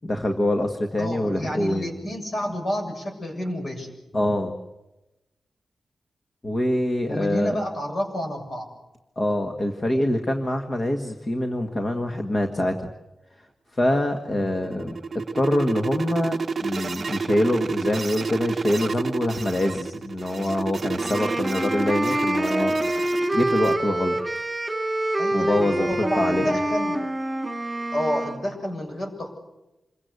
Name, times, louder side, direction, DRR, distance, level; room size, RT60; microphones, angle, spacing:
voice 1, 0.0-1.9 4.1-4.5 6.4-7.5 9.2-12.9 13.7-15.0 15.3-22.8 23.3-24.2 25.3-26.5, left 1 dB, 30° left, 4 dB, 1.7 m, -25 dB
voice 2, 1.0-3.9 7.1-8.7 25.2-27.0 27.9-29.4, equal, 45° left, 3 dB, 7.3 m, -29 dB
sound 1, 14.3-23.7, right 4 dB, 40° right, 0.8 m, -30 dB
sound 2, 20.9-28.4, right 1 dB, 15° right, 3.2 m, -26 dB
27.5 x 23.5 x 8.2 m, 0.99 s
wide cardioid pair, 160°, 0 cm